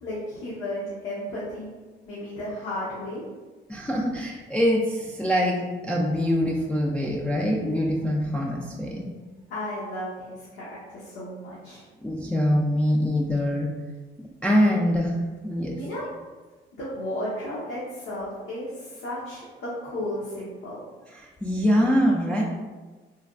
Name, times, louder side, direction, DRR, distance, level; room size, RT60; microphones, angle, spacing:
voice 1, 0.0-1.7 2.1-3.2 9.5-11.8 15.7-16.0 16.7-20.8, left 1 dB, 75° left, -8 dB, 0.8 m, -34 dB
voice 2, 3.7-9.1 12.0-13.7 14.4-15.2 15.4-15.7 21.1-22.4, equal, 5° left, -4 dB, 0.3 m, -24 dB
3.2 x 2.2 x 2.4 m, 1.3 s
cardioid pair, 90°, 20 cm